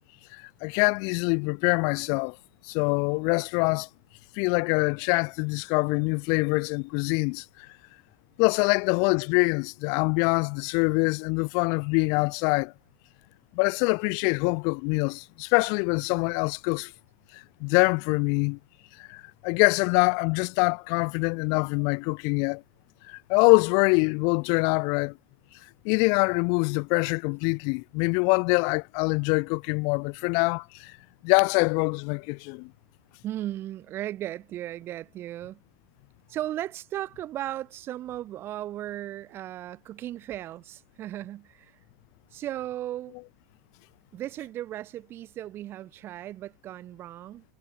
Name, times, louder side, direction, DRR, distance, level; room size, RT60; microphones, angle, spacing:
voice 1, 0.3-2.4 2.6-3.9 4.3-7.7 8.4-12.7 13.5-16.9 17.3-18.6 19.0-22.6 23.1-25.1 25.8-31.0 31.2-32.7, left 37 dB, 40° left, 5.0 m, -24 dB
voice 2, 33.2-35.6 36.3-41.7 42.3-43.1 44.1-47.4, right 13 dB, 25° right, 5.5 m, -36 dB
supercardioid pair, 165°, 10 cm